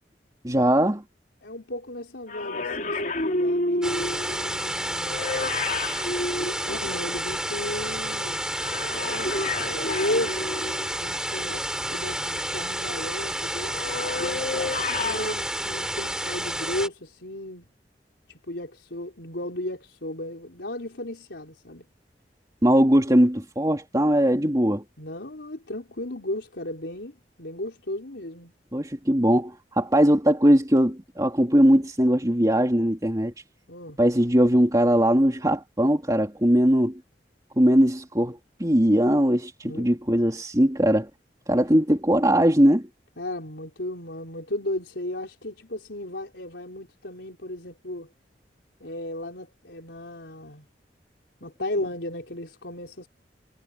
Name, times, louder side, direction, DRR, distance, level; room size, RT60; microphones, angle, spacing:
voice 1, 0.4-1.0 22.6-24.8 28.7-33.3 34.0-37.0 37.6-41.1 41.5-42.9, equal, 20° right, 3.0 m, -20 dB
voice 2, 1.4-5.2 6.4-8.4 8.9-9.3 9.7-10.5 11.0-13.7 14.1-17.7 18.3-21.8 25.0-28.5 33.7-34.0 39.6-39.9 43.2-48.1 48.8-50.7 51.4-53.1, left 1 dB, 90° left, 4.3 m, -35 dB
sound 1, 2.3-7.3 8.5-11.1 13.5-15.3, left 2 dB, 50° left, 3.5 m, -30 dB
sound 2, 3.8-16.9, right 1 dB, 5° right, 6.0 m, -30 dB
head